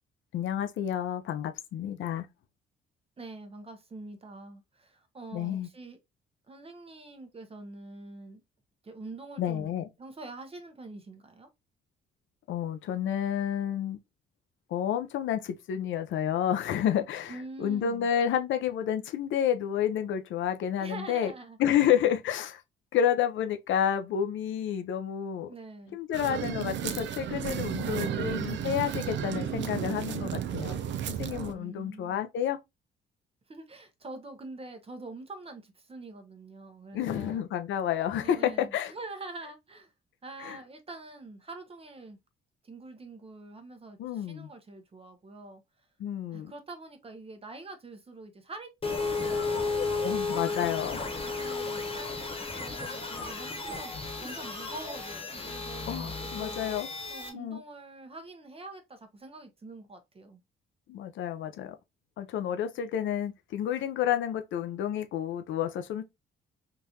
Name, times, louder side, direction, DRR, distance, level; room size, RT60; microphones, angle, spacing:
voice 1, 0.3-2.3 5.3-5.7 9.4-9.8 12.5-14.0 14.7-21.3 21.6-22.6 22.9-25.5 25.9-30.8 31.1-32.6 36.9-38.9 40.4-40.6 44.0-44.5 46.0-46.5 50.0-51.0 55.9-56.9 57.3-57.6 60.9-61.7 62.2-66.0, left 9 dB, 75° left, 0.6 m, -30 dB
voice 2, 3.2-6.0 6.5-8.4 8.8-9.7 10.0-11.5 17.3-18.1 20.8-21.6 21.8-21.9 25.5-26.0 31.5-32.2 33.5-37.4 38.2-39.9 40.2-42.2 42.6-45.6 46.3-48.7 49.0-49.7 51.2-56.6 57.1-60.4, right 2 dB, 30° right, 0.8 m, -45 dB
sound 1, 26.1-31.5, right 9 dB, 70° right, 0.5 m, -33 dB
sound 2, 48.8-57.3, left 3 dB, 25° left, 1.2 m, -33 dB
3.7 x 2.5 x 2.8 m
cardioid pair, 90°, 20 cm